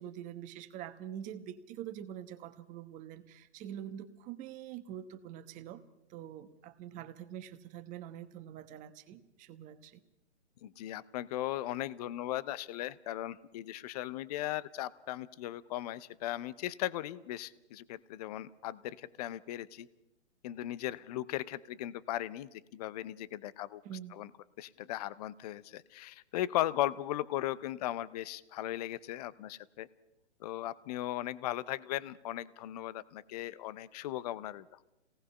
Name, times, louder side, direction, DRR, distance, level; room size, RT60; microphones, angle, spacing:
voice 1, 0.0-5.8 6.1-10.0 23.8-24.2, right 10 dB, 20° right, 10 dB, 1.2 m, -45 dB
voice 2, 10.6-19.9 20.4-23.8 24.1-24.3 24.6-29.9 30.4-34.7, left 14 dB, 35° left, 18 dB, 0.7 m, -37 dB
27.5 x 18.5 x 5.5 m, 0.90 s
hypercardioid pair, 135°, 34 cm